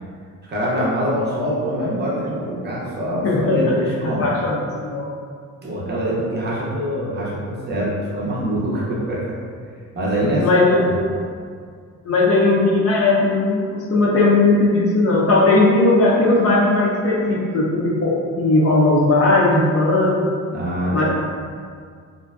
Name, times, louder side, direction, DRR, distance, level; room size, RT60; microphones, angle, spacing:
voice 1, 0.5-4.4 5.6-9.3 9.9-11.2 20.5-21.0, equal, 35° right, -6 dB, 0.5 m, -24 dB
voice 2, 3.2-3.6 4.2-5.1 10.2-10.8 12.0-20.2 20.9-21.0, left 2 dB, 45° left, -4 dB, 0.4 m, -17 dB
2.5 x 2.1 x 2.3 m, 2.1 s
cardioid pair, 130°, 32 cm